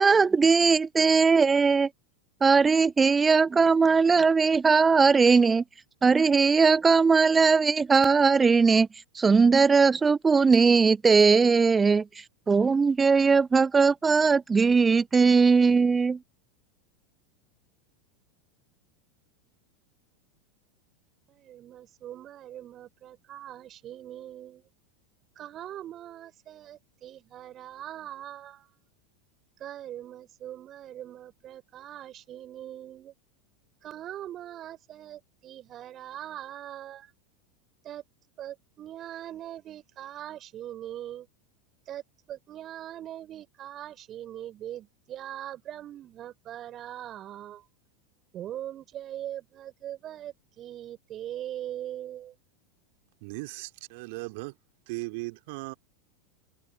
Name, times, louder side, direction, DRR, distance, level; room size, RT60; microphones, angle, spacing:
voice 1, 0.0-1.9 2.4-5.6 6.0-8.9 9.1-16.2, right 5 dB, 15° right, 0.5 m, -20 dB
voice 2, 21.3-24.7 25.3-28.7 29.6-33.1 33.8-37.1 37.8-38.0 38.4-41.3 41.9-47.6 48.3-52.3, right 12 dB, 35° right, 3.2 m, -41 dB
voice 3, 53.2-54.6 54.9-55.7, right 26 dB, 50° right, 3.1 m, -37 dB
figure-of-eight pair, 85°, 0 cm